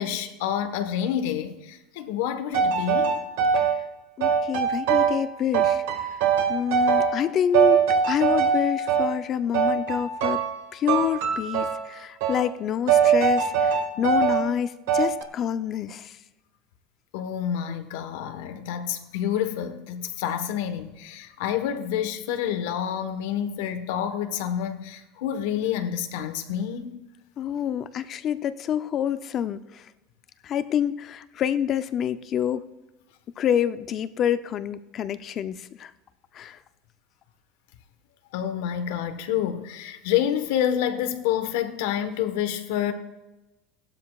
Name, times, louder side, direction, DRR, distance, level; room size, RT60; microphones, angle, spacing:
voice 1, 0.0-3.2 13.9-14.0 17.1-27.0 38.3-42.9, left 10 dB, 80° left, 1.2 m, -28 dB
sound 1, 2.5-3.8 4.2-5.3 5.5-7.3 7.5-9.1 9.5-10.6 10.9-11.9 12.2-12.5 12.9-14.5 14.9-15.2, right 7 dB, 85° right, 1.7 m, -22 dB
voice 2, 4.2-6.2 6.5-10.4 10.7-16.2 27.4-29.9 30.4-32.6 33.4-35.9 36.3-36.6, left 9 dB, 35° left, 0.5 m, -27 dB
17.0 x 12.5 x 2.4 m
supercardioid pair, 150°, 0 cm